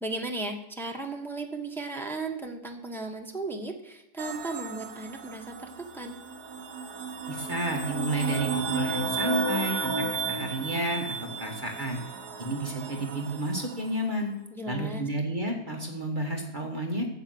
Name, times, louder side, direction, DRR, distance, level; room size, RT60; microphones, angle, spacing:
voice 1, 0.0-6.2 14.5-15.0, right 2 dB, ahead, 2 dB, 0.8 m, -36 dB
sound 1, 4.2-13.9, right 3 dB, 60° right, 1.8 m, -34 dB
voice 2, 7.3-12.0 12.4-14.3 14.7-17.1, right 1 dB, 25° right, 0 dB, 1.5 m, -31 dB
9.6 x 8.2 x 7.7 m, 0.85 s
omnidirectional pair, 2.0 m